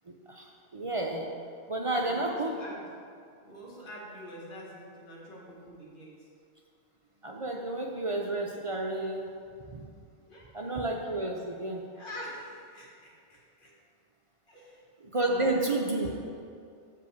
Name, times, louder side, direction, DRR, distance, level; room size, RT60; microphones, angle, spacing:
voice 1, 0.1-1.3 1.7-2.5 7.2-9.3 9.7-9.9 10.5-11.8 15.1-16.2, right 2 dB, 40° right, 1 dB, 0.5 m, -31 dB
voice 2, 1.9-2.8 3.4-6.3 10.3-10.7 11.9-13.7 14.5-14.8 15.2-16.3, equal, 50° left, -5 dB, 1.9 m, -46 dB
6.8 x 5.5 x 6.4 m, 2.3 s
omnidirectional pair, 1.2 m